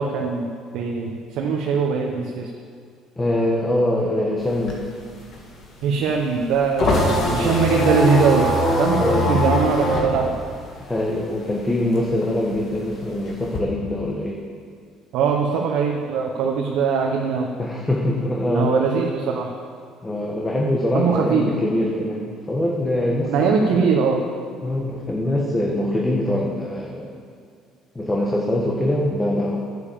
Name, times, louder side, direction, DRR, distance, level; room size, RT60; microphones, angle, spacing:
voice 1, 0.0-2.5 5.8-10.3 15.1-17.5 18.5-19.5 20.9-21.5 23.2-24.2, right 5 dB, 75° right, 0 dB, 1.1 m, -21 dB
voice 2, 3.2-4.8 7.4-7.6 8.9-9.4 10.8-14.4 17.6-18.7 20.0-23.9 24.6-27.1 27.9-29.6, left 1 dB, 15° left, -2 dB, 1.3 m, -23 dB
sound 1, 4.4-11.5 11.8-13.6, left 1 dB, 45° left, 2.3 m, -22 dB
10.0 x 8.2 x 7.1 m, 2.2 s
cardioid pair, 115°, 0 cm